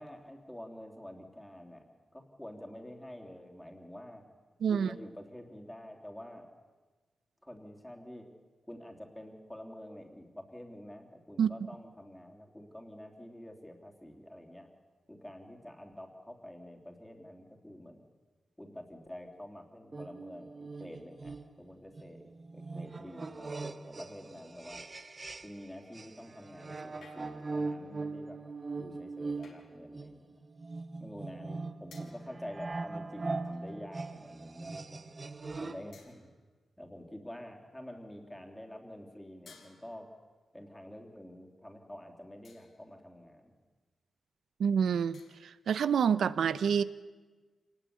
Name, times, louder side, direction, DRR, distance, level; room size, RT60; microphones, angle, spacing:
voice 1, 0.0-1.8 2.1-4.3 4.7-6.5 7.4-8.3 8.7-14.7 15.1-18.0 18.6-22.2 22.5-24.8 25.4-28.4 28.7-30.4 31.0-35.0 35.6-36.3 36.8-40.1 40.5-43.5, left 1 dB, 5° left, 3.3 m, -48 dB
voice 2, 4.6-5.0 11.4-11.5 44.6-46.8, right 7 dB, 85° right, 0.8 m, -28 dB
sound 1, 19.9-25.7 25.9-35.9, right 3 dB, 30° right, 0.9 m, -41 dB
sound 2, 27.0-27.6 29.4-29.8 31.9-32.3 33.4-33.8 34.5-34.7 35.9-36.5 39.4-40.3 42.4-42.9 45.1-45.7, left 5 dB, 80° left, 4.6 m, -59 dB
26.5 x 20.0 x 8.5 m
wide cardioid pair, 125°, 0 cm